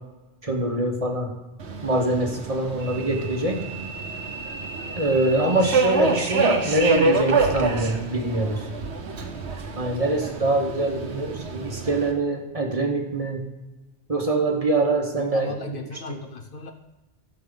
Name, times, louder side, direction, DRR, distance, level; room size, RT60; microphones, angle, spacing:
voice 1, 0.4-1.3 1.8-3.6 4.9-8.6 9.8-13.4 14.1-15.6 15.9-16.2, right 2 dB, 30° right, 2 dB, 1.3 m, -24 dB
Subway metro underground, 1.6-12.1, right 3 dB, 70° right, 1.3 m, -27 dB
voice 2, 5.3-5.7 15.2-16.7, left 3 dB, 55° left, 6 dB, 0.8 m, -35 dB
14.0 x 7.0 x 3.9 m, 1.1 s
omnidirectional pair, 1.2 m